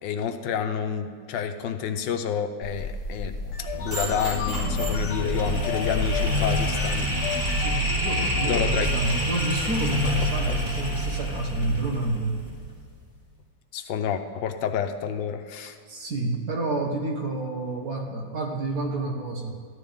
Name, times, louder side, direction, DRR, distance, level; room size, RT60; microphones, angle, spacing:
voice 1, 0.0-3.3 3.6-7.1 8.5-8.9 10.5-10.6 13.7-15.8, left 7 dB, 80° left, 7 dB, 1.4 m, -29 dB
sound 1, 2.6-6.9, left 2 dB, 90° right, 4.1 m, -32 dB
sound 2, 3.4-11.7, left 7 dB, 55° left, 1.0 m, -36 dB
sound 3, 3.7-12.8, equal, 20° right, 2.8 m, -27 dB
voice 2, 7.6-12.5 15.6-19.5, right 2 dB, 60° right, 0 dB, 1.8 m, -29 dB
14.0 x 11.5 x 3.6 m, 2.1 s
omnidirectional pair, 1.9 m